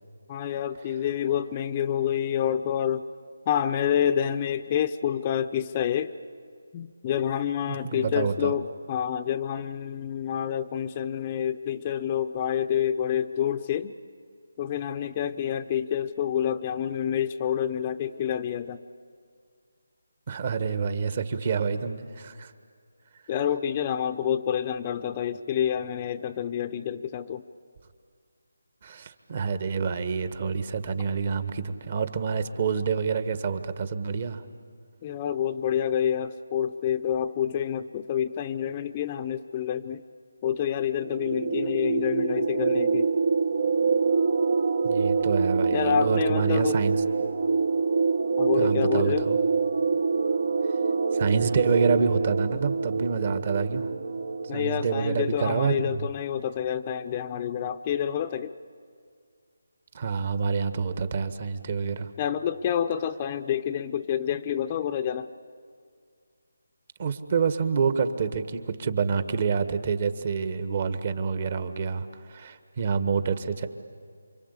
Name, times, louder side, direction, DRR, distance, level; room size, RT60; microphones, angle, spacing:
voice 1, 0.3-3.1 3.5-6.1 6.7-13.9 14.6-18.8 23.3-27.4 35.0-40.0 40.4-43.1 45.7-46.8 48.4-49.3 54.5-58.5 62.2-65.3, left 9 dB, 25° left, 9 dB, 0.7 m, -28 dB
voice 2, 7.7-8.6 20.3-22.5 28.8-34.4 44.8-46.9 48.6-49.4 51.1-53.9 54.5-56.1 59.9-62.1 67.0-73.7, right 5 dB, 40° right, 10 dB, 1.6 m, -27 dB
sound 1, 41.0-55.3, right 4 dB, 55° right, 1.0 m, -25 dB
28.0 x 25.0 x 8.4 m, 2.1 s
figure-of-eight pair, 160°, 0 cm